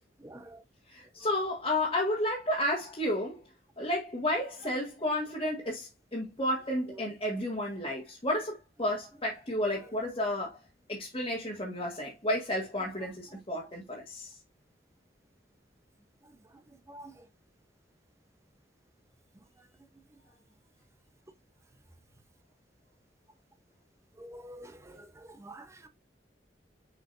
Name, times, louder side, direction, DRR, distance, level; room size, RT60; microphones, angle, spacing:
voice 1, 0.2-0.6 16.9-17.1 24.2-25.9, right 1 dB, 15° right, 0.9 m, -48 dB
voice 2, 0.9-3.4 3.8-10.6 10.9-14.4, left 1 dB, 30° left, 1.7 m, -32 dB
6.8 x 5.1 x 2.7 m
head